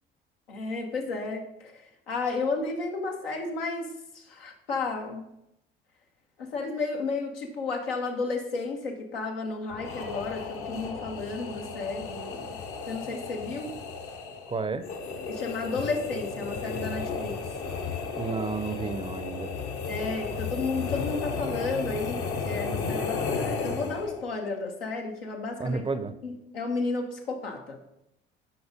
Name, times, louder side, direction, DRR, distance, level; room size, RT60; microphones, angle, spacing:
voice 1, 0.5-5.3 6.4-12.6 12.9-13.7 15.3-17.4 19.9-25.8 26.2-27.8, left 3 dB, 80° left, 2 dB, 1.0 m, -32 dB
sound 1, 9.7-24.3, left 5 dB, 55° left, 1.1 m, -34 dB
voice 2, 14.5-14.8 18.2-19.5 25.6-26.1, right 4 dB, 20° right, 12 dB, 0.5 m, -31 dB
5.9 x 5.4 x 5.0 m, 0.83 s
figure-of-eight pair, 55°, 29 cm